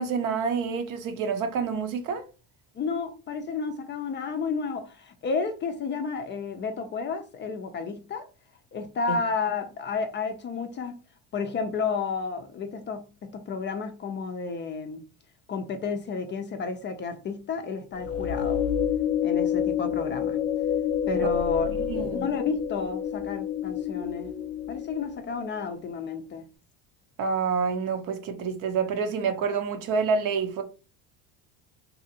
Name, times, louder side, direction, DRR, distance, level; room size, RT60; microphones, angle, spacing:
voice 1, 0.0-2.2 9.1-9.2 21.2-21.3 21.7-22.3 27.2-30.6, right 5 dB, 60° right, 0.7 m, -28 dB
voice 2, 2.8-8.3 8.7-11.0 11.3-15.0 15.5-18.6 19.2-20.4 21.1-24.3 24.7-26.5, left 5 dB, 30° left, 0.4 m, -32 dB
sound 1, 18.0-25.3, left 9 dB, 80° left, 0.5 m, -28 dB
2.7 x 2.4 x 2.7 m
supercardioid pair, 100°, 37 cm